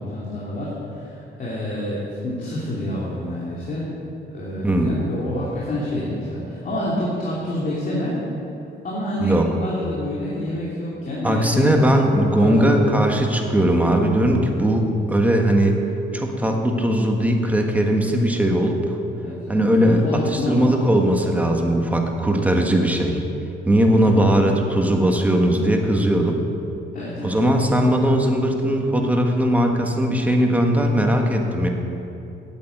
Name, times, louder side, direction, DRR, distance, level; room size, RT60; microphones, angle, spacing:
voice 1, 0.0-3.8 4.3-8.2 8.8-11.8 12.4-12.9 19.2-21.1 23.9-24.4 26.9-27.5, left 1 dB, 45° left, -6 dB, 2.6 m, -28 dB
voice 2, 4.6-4.9 9.2-9.5 11.2-15.7 16.1-19.0 19.5-23.2 23.7-26.4 27.2-31.7, right 1 dB, 10° right, 2 dB, 1.5 m, -19 dB
8.8 x 8.5 x 8.0 m, 2.8 s
cardioid pair, 90°, 20 cm